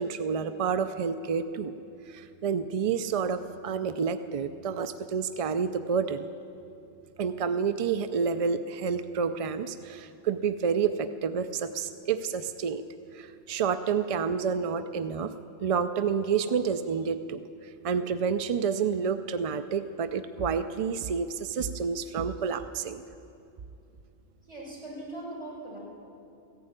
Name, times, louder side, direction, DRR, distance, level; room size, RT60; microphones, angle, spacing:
voice 1, 0.0-1.7 2.1-6.3 7.2-12.8 13.1-15.3 15.6-17.4 17.8-23.0, right 6 dB, 65° right, 11 dB, 0.3 m, -29 dB
voice 2, 24.4-25.8, right 1 dB, 30° right, -7 dB, 5.5 m, -40 dB
15.0 x 11.0 x 8.8 m, 2.6 s
omnidirectional pair, 1.2 m